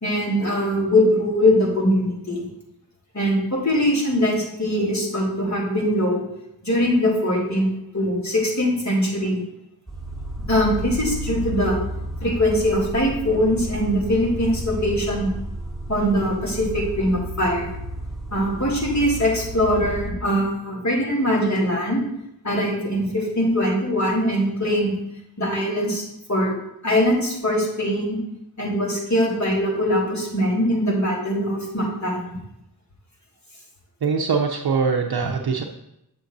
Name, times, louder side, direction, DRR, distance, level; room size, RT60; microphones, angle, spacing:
voice 1, 0.0-2.4 3.1-6.2 6.6-7.7 7.9-9.4 10.5-11.8 12.2-15.3 15.9-17.7 18.3-22.0 22.4-24.9 25.4-26.0 26.3-26.5 26.8-28.2 28.6-32.4, equal, 50° left, -3 dB, 2.7 m, -22 dB
sound 1, 9.9-20.1, right 1 dB, ahead, 1.2 m, -32 dB
voice 2, 34.0-35.6, right 5 dB, 80° right, 1 dB, 0.6 m, -22 dB
8.1 x 7.0 x 2.6 m, 0.83 s
wide cardioid pair, 60°, 38 cm